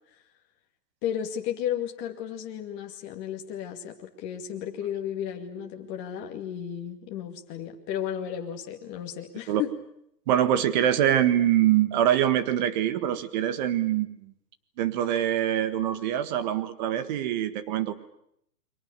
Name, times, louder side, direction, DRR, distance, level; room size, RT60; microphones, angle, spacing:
voice 1, 1.0-9.7, left 9 dB, 20° left, 2 dB, 2.4 m, -33 dB
voice 2, 10.3-14.3 14.8-17.9, right 11 dB, 25° right, 11 dB, 1.7 m, -24 dB
29.5 x 23.5 x 6.8 m, 0.73 s
hypercardioid pair, 155°, 49 cm